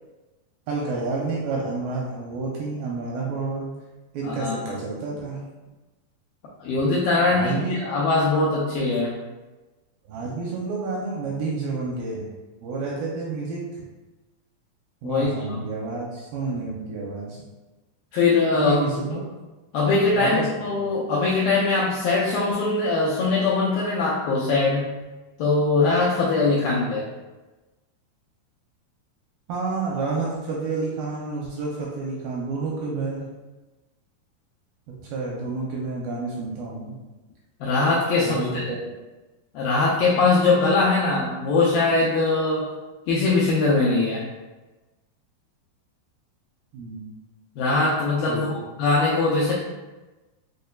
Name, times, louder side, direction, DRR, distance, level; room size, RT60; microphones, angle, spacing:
voice 1, 0.7-3.7 4.1-5.4 7.3-7.8 10.1-12.3 12.6-13.8 15.0-17.4 18.5-19.3 20.0-20.9 29.5-33.2 35.0-37.0 38.2-38.8 46.7-47.1 48.3-48.6, right 3 dB, 85° right, -3 dB, 2.1 m, -29 dB
voice 2, 4.2-4.6 6.6-9.2 15.0-15.6 18.1-18.7 19.1-19.2 19.7-24.9 25.4-27.0 37.6-38.7 39.6-42.7 43.1-44.3 47.6-48.5 48.8-49.5, left 3 dB, 90° left, -6 dB, 2.0 m, -21 dB
6.3 x 2.2 x 2.2 m, 1.2 s
omnidirectional pair, 4.5 m